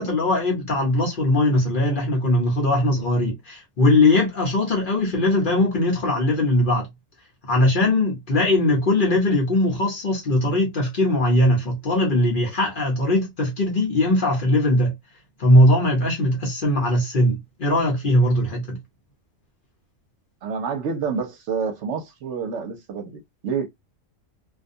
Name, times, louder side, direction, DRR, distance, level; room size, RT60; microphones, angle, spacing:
voice 1, 0.0-6.9 7.5-14.9 15.4-18.8, left 1 dB, 45° left, 1.0 m, -20 dB
voice 2, 20.4-23.7, right 5 dB, 65° right, 0.9 m, -28 dB
2.5 x 2.2 x 2.6 m
omnidirectional pair, 1.4 m